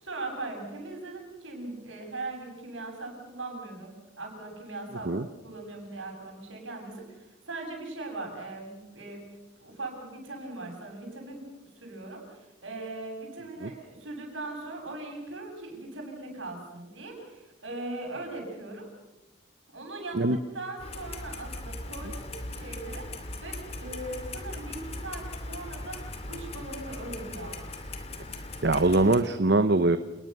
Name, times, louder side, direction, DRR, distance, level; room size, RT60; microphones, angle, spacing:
voice 1, 0.0-9.3 9.6-11.4 11.8-18.9 19.7-23.1 23.4-27.7, right 2 dB, 70° right, 2 dB, 7.9 m, -40 dB
Clock, 20.8-29.2, left 2 dB, 30° left, 2.6 m, -39 dB
voice 2, 28.6-30.0, right 2 dB, 55° right, 11 dB, 0.9 m, -22 dB
29.0 x 20.5 x 6.8 m, 1.0 s
head